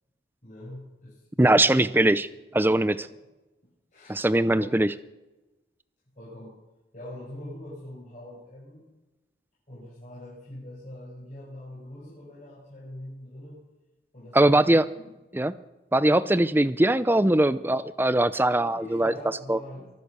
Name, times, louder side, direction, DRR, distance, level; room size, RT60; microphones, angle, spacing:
voice 1, 0.4-1.2 1.5-2.3 3.0-3.2 3.9-4.3 4.6-4.8 6.1-6.6 6.9-8.9 9.7-13.6 14.1-15.1 18.5-19.9, left 1 dB, 45° left, -8 dB, 6.6 m, -43 dB
voice 2, 1.4-2.3 2.5-3.1 4.1-4.9 14.3-14.8 15.3-15.5 15.9-19.1 19.5-19.6, right 1 dB, 10° right, 15 dB, 0.5 m, -21 dB
23.5 x 8.3 x 6.8 m, 1.1 s
head